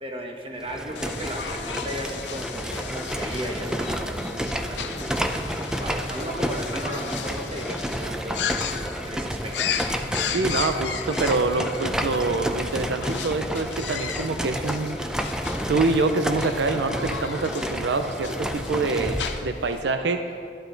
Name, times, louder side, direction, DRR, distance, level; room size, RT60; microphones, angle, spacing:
voice 1, 0.0-5.2 5.8-8.4 9.0-9.7, equal, 30° right, 1 dB, 1.2 m, -35 dB
sound 1, 0.6-19.5, equal, 5° right, 0.5 m, -30 dB
sound 2, 1.0-19.8, left 8 dB, 80° left, 0.6 m, -36 dB
voice 2, 10.3-15.0 15.7-20.2, right 3 dB, 80° right, 7 dB, 0.5 m, -25 dB
12.0 x 10.0 x 3.9 m, 2.4 s
head